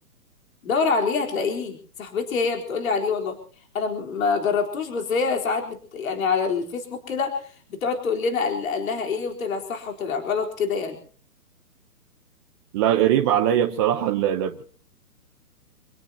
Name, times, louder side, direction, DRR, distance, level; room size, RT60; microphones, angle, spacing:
voice 1, 0.6-3.4 3.7-11.0, left 5 dB, 55° left, 4.1 m, -26 dB
voice 2, 12.7-14.6, right 11 dB, 15° right, 0.8 m, -21 dB
27.5 x 18.0 x 2.9 m
hypercardioid pair, 155°, 48 cm